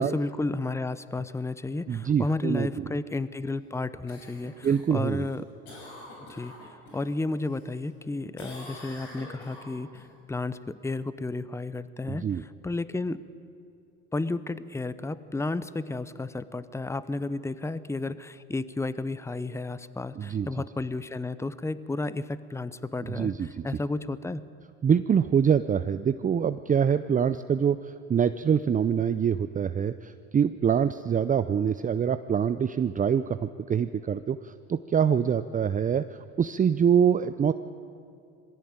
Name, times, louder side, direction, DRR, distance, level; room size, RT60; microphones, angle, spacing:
voice 1, 0.0-5.4 6.3-6.5 6.9-13.2 14.1-24.4, left 2 dB, 10° left, 15 dB, 0.8 m, -32 dB
voice 2, 1.9-2.7 4.6-5.3 12.1-12.4 20.2-20.5 23.1-23.7 24.8-37.5, right 7 dB, 25° right, 12 dB, 0.6 m, -25 dB
Cough, 4.1-7.1 7.5-8.1 8.4-10.1 14.5-14.6, left 1 dB, 90° left, 6.0 m, -46 dB
21.5 x 16.0 x 8.9 m, 2.5 s
supercardioid pair, 80°, 32 cm